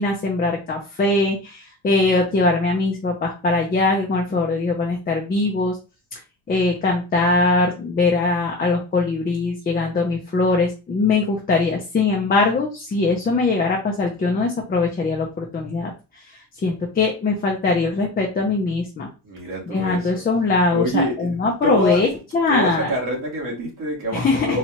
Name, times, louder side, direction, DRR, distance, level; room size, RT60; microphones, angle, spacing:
voice 1, 0.0-5.8 6.5-19.1 19.7-22.1 22.3-22.9 24.1-24.6, left 3 dB, 20° left, 0.6 m, -21 dB
voice 2, 19.2-20.2 20.7-22.0 22.5-24.6, equal, 50° right, 2.1 m, -26 dB
4.3 x 2.4 x 2.9 m
cardioid pair, 145°, 42 cm